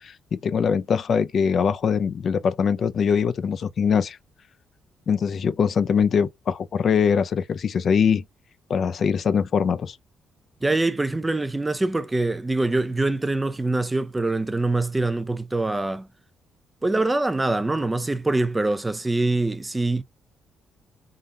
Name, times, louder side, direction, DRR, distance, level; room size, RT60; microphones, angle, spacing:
voice 1, 0.0-4.2 5.1-8.2 8.7-10.0, left 6 dB, 55° left, 0.4 m, -22 dB
voice 2, 10.6-16.1 16.8-20.0, right 2 dB, 15° right, 0.5 m, -24 dB
3.7 x 2.8 x 3.7 m
cardioid pair, 90°, 0 cm